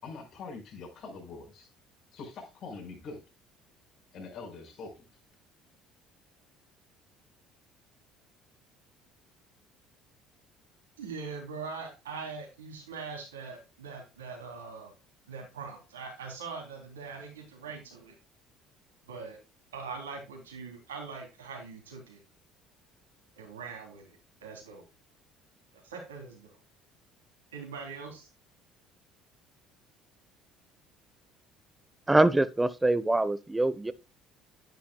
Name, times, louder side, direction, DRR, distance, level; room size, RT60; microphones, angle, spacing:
voice 1, 0.0-1.7 2.1-3.2 4.1-5.0, left 4 dB, 55° left, 4.9 m, -43 dB
voice 2, 11.0-14.9 15.3-18.1 19.1-19.4 19.7-22.2 23.4-24.8 25.7-26.6 27.5-28.3, right 5 dB, 90° right, 3.4 m, -42 dB
voice 3, 32.1-33.9, right 2 dB, 15° right, 1.2 m, -24 dB
10.5 x 10.0 x 2.3 m
hypercardioid pair, 60°, 0 cm